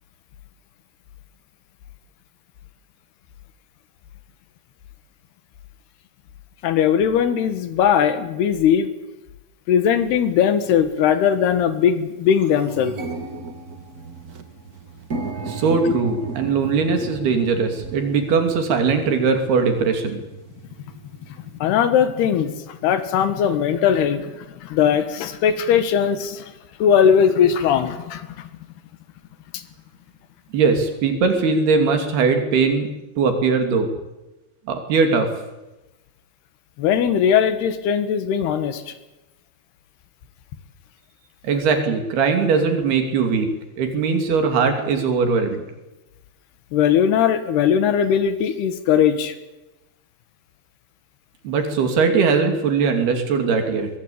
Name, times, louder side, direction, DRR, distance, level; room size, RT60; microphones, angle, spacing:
voice 1, 6.6-8.9 9.7-13.0 21.6-26.5 26.8-28.5 29.5-29.6 36.8-38.9 46.7-49.4, left 8 dB, 80° left, 11 dB, 3.6 m, -19 dB
sound 1, 10.0-10.1 10.9-11.1 11.5-11.6 11.9-21.6, right 3 dB, 60° right, 0.9 m, -35 dB
voice 2, 15.5-20.2 30.5-32.9 33.2-33.9 34.7-35.3 41.4-43.5 43.8-45.6 51.4-53.9, right 5 dB, 75° right, 6 dB, 4.6 m, -20 dB
23.5 x 21.0 x 8.6 m, 1.0 s
omnidirectional pair, 4.6 m